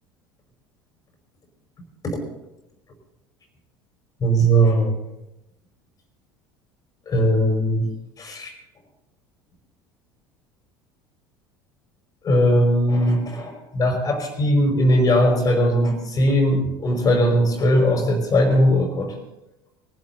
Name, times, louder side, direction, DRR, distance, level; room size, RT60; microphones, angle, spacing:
voice 1, 4.2-5.0 7.1-7.8 8.2-8.5 12.2-19.1, equal, 30° left, 3 dB, 5.2 m, -19 dB
23.0 x 12.0 x 4.0 m, 0.91 s
figure-of-eight pair, 70°, 12 cm